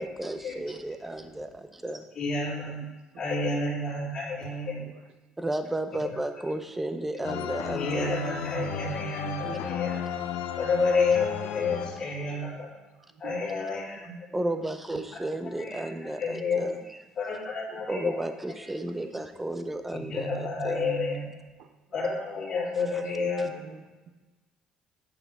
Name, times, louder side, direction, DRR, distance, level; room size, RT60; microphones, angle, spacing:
voice 1, 0.0-2.1 5.4-8.1 14.3-16.7 17.9-20.8, right 1 dB, 10° right, 8 dB, 0.6 m, -33 dB
voice 2, 2.2-2.8 3.2-4.8 7.7-10.0 10.5-12.7 13.2-14.1 15.6-16.7 17.2-18.2 20.1-21.3 21.9-23.5, left 3 dB, 35° left, -6 dB, 3.5 m, -29 dB
voice 3, 2.7-3.6 4.7-5.0 8.8-9.1 9.4-9.6 10.3-10.4 13.1-13.4 14.5-14.7 14.9-15.0 17.7-17.8 21.6-21.7 22.0-22.1 23.2-24.1, right 7 dB, 60° right, 8 dB, 0.8 m, -46 dB
sound 1, 7.2-12.5, left 9 dB, 80° left, 0.7 m, -34 dB
9.4 x 8.6 x 3.6 m, 1.2 s
cardioid pair, 150°, 2 cm